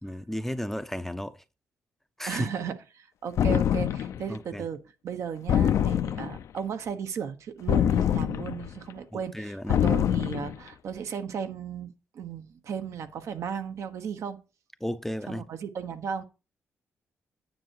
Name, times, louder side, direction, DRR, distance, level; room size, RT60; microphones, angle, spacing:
voice 1, 0.0-1.3 2.2-2.5 4.3-4.6 9.1-9.8 14.8-15.4, equal, 5° left, 0.6 m, -33 dB
voice 2, 2.3-14.4 15.3-16.2, right 7 dB, 65° right, 1.2 m, -35 dB
sound 1, 3.4-4.2 5.5-6.5 7.7-8.7 9.7-10.6, left 10 dB, 70° left, 0.6 m, -24 dB
9.6 x 6.6 x 4.7 m
cardioid pair, 95°, 5 cm